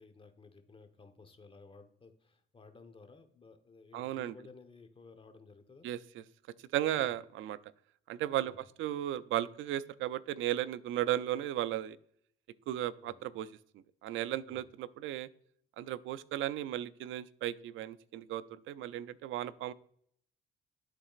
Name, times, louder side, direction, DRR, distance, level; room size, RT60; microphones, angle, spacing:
voice 1, 0.0-5.9 7.0-7.1 8.4-8.6 13.0-13.2 14.5-14.7, left 4 dB, 25° left, 8 dB, 1.0 m, -56 dB
voice 2, 3.9-4.3 5.8-6.2 6.7-7.6 8.1-12.0 12.7-13.5 13.7-15.3 15.8-19.7, right 12 dB, 80° right, 17 dB, 0.4 m, -35 dB
12.0 x 4.0 x 2.4 m, 0.66 s
cardioid pair, 90°, 20 cm